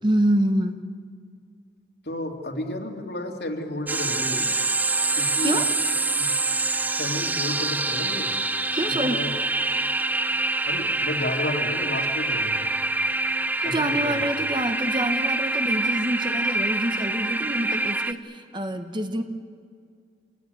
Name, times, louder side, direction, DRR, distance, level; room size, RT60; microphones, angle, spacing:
voice 1, 0.0-0.9 5.4-5.7 8.7-9.2 13.6-19.2, right 1 dB, 25° right, 8 dB, 1.1 m, -26 dB
voice 2, 2.0-4.5 5.2-5.6 6.1-6.3 7.0-8.3 9.0-9.3 10.6-12.6 13.6-14.2, left 1 dB, 70° left, 2 dB, 2.6 m, -32 dB
sound 1, 3.9-18.1, right 2 dB, 10° right, 0.6 m, -25 dB
27.5 x 18.0 x 9.1 m, 2.3 s
head